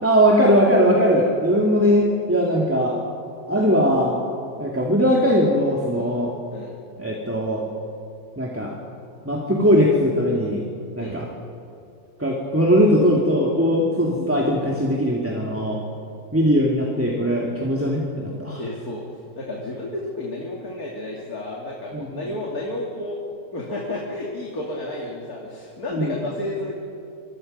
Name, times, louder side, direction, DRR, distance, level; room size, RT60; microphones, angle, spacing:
voice 1, 0.0-3.0 3.5-4.2 4.6-6.3 7.0-7.6 8.4-8.7 9.2-10.6 11.0-11.3 12.2-15.8 16.3-18.6 21.9-22.1 25.9-26.2, equal, 10° right, -1 dB, 2.2 m, -20 dB
voice 2, 18.6-19.0 19.3-23.2 23.5-26.7, left 1 dB, 75° left, -3 dB, 3.1 m, -31 dB
25.5 x 24.0 x 5.4 m, 2.7 s
omnidirectional pair, 1.6 m